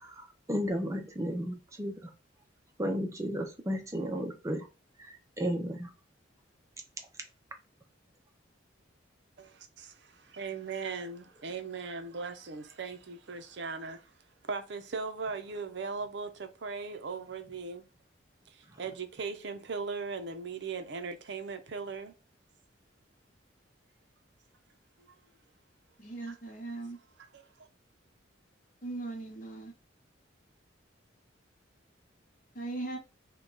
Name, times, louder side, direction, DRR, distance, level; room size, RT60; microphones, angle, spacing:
voice 1, 0.0-2.1 2.8-4.7 5.4-5.9, equal, 15° right, 0.5 m, -33 dB
voice 2, 9.4-14.1 14.4-17.8 18.5-22.1 25.0-25.2 26.3-26.4 27.3-27.7, right 4 dB, 60° right, 0.6 m, -39 dB
voice 3, 26.0-27.0 28.8-29.7 32.5-33.0, right 2 dB, 45° left, 0.9 m, -39 dB
3.5 x 2.3 x 3.9 m
head